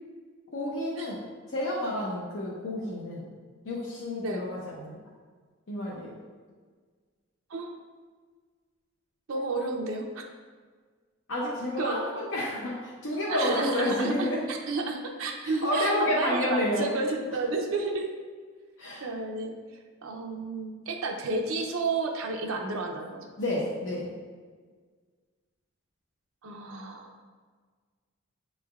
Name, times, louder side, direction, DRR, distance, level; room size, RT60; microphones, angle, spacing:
voice 1, 0.5-1.2 1.5-3.3 3.6-5.0 5.7-6.2 11.3-14.5 15.4-16.9 18.8-19.0 23.4-24.1, left 1 dB, 70° left, -5 dB, 0.6 m, -30 dB
voice 2, 9.3-10.2 11.8-12.0 13.3-18.1 19.0-19.5 20.0-23.3 26.4-27.2, right 3 dB, 85° right, 2 dB, 0.5 m, -31 dB
7.0 x 3.2 x 2.3 m, 1.5 s
head